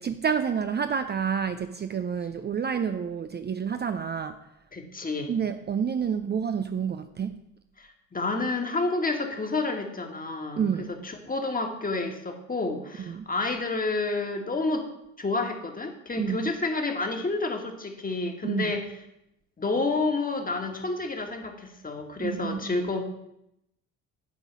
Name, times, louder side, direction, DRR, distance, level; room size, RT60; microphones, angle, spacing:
voice 1, 0.0-4.4 5.3-7.4 10.6-10.9 13.1-13.3 16.2-16.5 18.4-18.7 22.2-22.8, right 7 dB, 30° right, 0.5 m, -29 dB
voice 2, 4.7-5.3 7.8-14.9 15.2-18.9 19.6-23.0, left 3 dB, 25° left, 1.7 m, -29 dB
10.0 x 3.9 x 7.3 m
hypercardioid pair, 60°, 34 cm